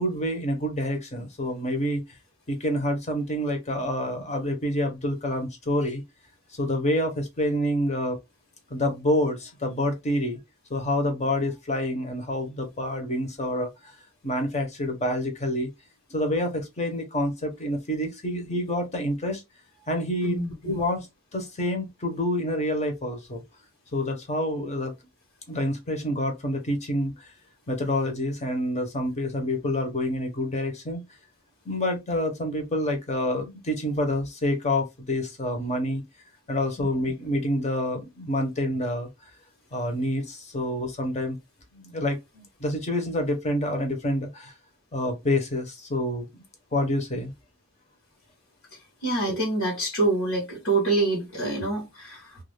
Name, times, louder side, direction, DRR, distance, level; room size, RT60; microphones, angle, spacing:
voice 1, 0.0-2.0 2.5-6.0 6.5-8.2 8.7-10.4 10.7-13.7 14.2-15.7 16.1-19.4 19.9-20.4 20.6-21.1 21.3-23.4 23.9-24.9 25.5-27.3 27.7-31.0 31.6-36.0 36.5-39.1 39.7-41.4 41.7-44.5 44.9-46.2 46.7-47.3, left 1 dB, 35° left, 0.9 m, -27 dB
voice 2, 20.2-20.7 36.8-36.9 49.0-52.4, right 2 dB, 70° left, 1.2 m, -26 dB
2.4 x 2.3 x 3.2 m
head